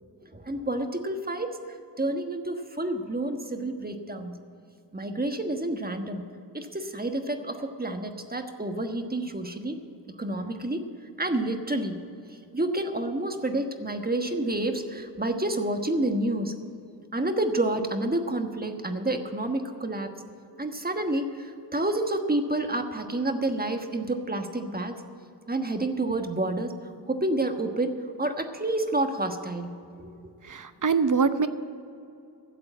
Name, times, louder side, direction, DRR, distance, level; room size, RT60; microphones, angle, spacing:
voice 1, 0.3-1.6 2.0-4.4 4.9-6.2 6.5-9.8 10.2-10.8 11.2-12.0 12.5-16.5 17.1-20.1 20.6-25.0 25.5-26.7 27.1-27.9 28.2-29.7 30.0-30.1, right 1 dB, 20° right, 5 dB, 1.3 m, -29 dB
voice 2, 30.4-31.5, right 5 dB, 45° right, 11 dB, 0.8 m, -24 dB
12.5 x 7.6 x 8.9 m, 2.6 s
wide cardioid pair, 60°, 41 cm